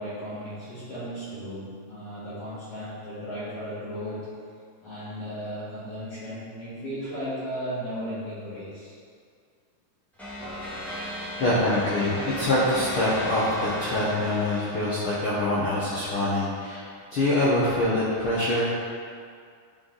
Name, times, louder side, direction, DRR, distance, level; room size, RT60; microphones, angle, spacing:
voice 1, 0.0-4.3 4.8-8.9, equal, 50° left, -13 dB, 2.5 m, -35 dB
sound 1, 10.2-15.7, equal, ahead, 0.5 m, -35 dB
voice 2, 11.4-18.7, left 1 dB, 75° left, -8 dB, 1.2 m, -25 dB
11.0 x 4.0 x 3.9 m, 2.2 s
omnidirectional pair, 4.0 m